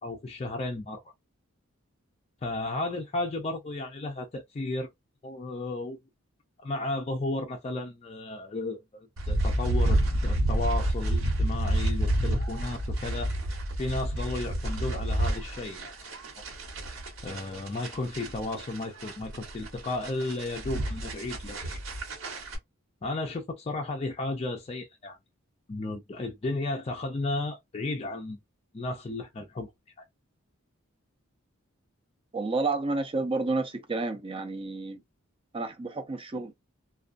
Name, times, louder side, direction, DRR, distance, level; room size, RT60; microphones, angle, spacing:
voice 1, 0.0-1.0 2.4-4.9 5.2-6.0 6.6-13.3 13.8-15.9 17.2-21.8 23.0-25.2 25.7-28.4 28.7-29.7, left 2 dB, 30° left, 0.4 m, -34 dB
sound 1, 9.2-22.6, right 1 dB, 80° right, 1.1 m, -29 dB
voice 2, 32.3-35.0 35.5-36.5, right 3 dB, 25° right, 0.5 m, -30 dB
2.3 x 2.2 x 2.5 m
head